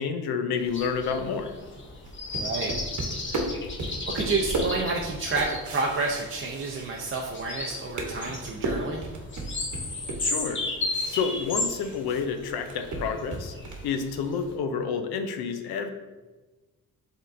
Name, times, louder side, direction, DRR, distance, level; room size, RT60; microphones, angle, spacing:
voice 1, 0.0-1.5 10.2-10.6 11.1-13.5 13.8-15.9, left 6 dB, 90° left, 7 dB, 0.6 m, -29 dB
sound 1, 0.6-14.5, left 3 dB, 30° left, 0.8 m, -35 dB
sound 2, 2.0-7.4 7.6-12.2 12.5-13.9, right 2 dB, 50° right, 1.0 m, -34 dB
voice 2, 2.4-2.7 4.1-9.1, right 3 dB, 35° right, -1 dB, 0.5 m, -29 dB
5.3 x 3.6 x 2.5 m, 1.2 s
cardioid pair, 85°, 37 cm